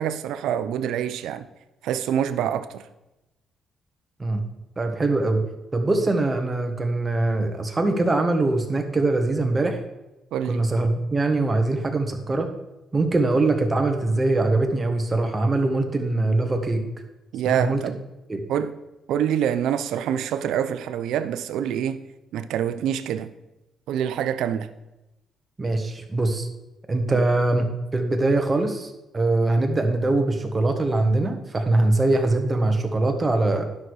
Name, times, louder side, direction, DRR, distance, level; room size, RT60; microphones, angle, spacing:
voice 1, 0.0-1.4 1.8-2.8 10.3-10.6 17.3-18.0 18.5-18.7 19.1-22.0 22.3-23.3 23.9-24.7 27.1-27.3, right 9 dB, 85° right, 0.6 m, -26 dB
voice 2, 4.8-5.4 5.7-9.8 10.4-12.5 12.9-16.8 17.4-17.8 18.3-18.4 25.6-26.5 26.9-27.6 27.9-33.6, right 2 dB, 25° right, 1.5 m, -22 dB
10.5 x 6.3 x 4.8 m
cardioid pair, 90°, 0 cm